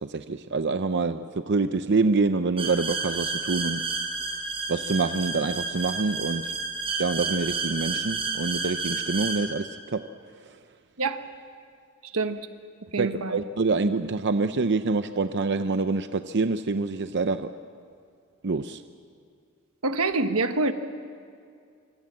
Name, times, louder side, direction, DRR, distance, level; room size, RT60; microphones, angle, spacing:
voice 1, 0.0-3.8 4.7-6.5 7.0-10.0 10.4-10.5 13.0-17.5 18.4-18.8, right 3 dB, 55° right, 9 dB, 0.7 m, -26 dB
sound 1, 2.6-9.4, right 4 dB, 25° right, 5.1 m, -31 dB
voice 2, 12.1-12.5 12.9-13.4 19.8-20.7, right 3 dB, 90° right, 8 dB, 1.4 m, -26 dB
25.5 x 25.0 x 7.6 m, 2.3 s
head